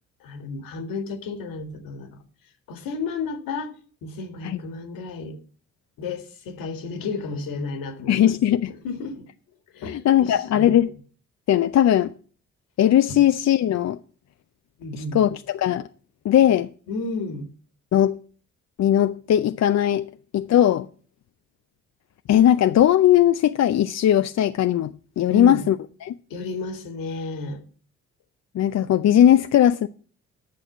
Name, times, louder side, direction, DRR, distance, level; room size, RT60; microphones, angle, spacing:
voice 1, 0.2-2.2 2.7-3.7 4.0-5.4 6.0-8.3 8.8-9.2 9.7-10.8 13.1-13.2 14.8-15.3 16.9-17.5 25.3-25.6 26.3-27.6, left 3 dB, 70° left, 1.9 m, -32 dB
voice 2, 8.1-8.7 9.9-10.9 11.5-12.1 12.8-14.0 14.9-15.9 16.2-16.7 17.9-18.2 18.8-20.9 22.3-25.8 26.0-26.2 28.5-29.9, left 11 dB, 50° left, 0.6 m, -19 dB
10.0 x 6.5 x 7.2 m
hypercardioid pair, 45°, 35 cm